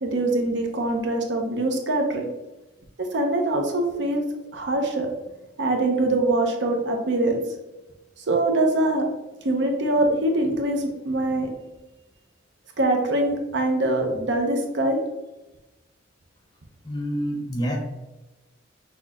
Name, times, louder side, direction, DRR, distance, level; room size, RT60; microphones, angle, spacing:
voice 1, 0.0-2.3 3.0-4.2 4.5-5.1 5.6-7.4 8.2-9.1 9.4-11.5 12.8-15.0, right 2 dB, 65° right, 3 dB, 0.7 m, -23 dB
voice 2, 16.8-17.8, equal, 20° left, 0 dB, 0.7 m, -27 dB
6.0 x 2.9 x 2.4 m, 1.1 s
head